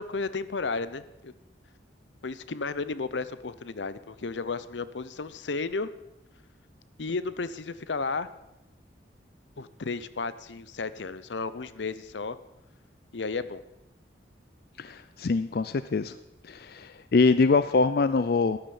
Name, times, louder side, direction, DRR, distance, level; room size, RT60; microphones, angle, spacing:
voice 1, 0.0-1.3 2.2-5.9 7.0-8.3 9.6-12.4 13.1-13.6, left 4 dB, 85° left, 15 dB, 0.8 m, -33 dB
voice 2, 14.8-16.1 16.5-18.6, left 4 dB, 55° left, 13 dB, 0.4 m, -24 dB
13.5 x 10.5 x 7.0 m, 0.93 s
head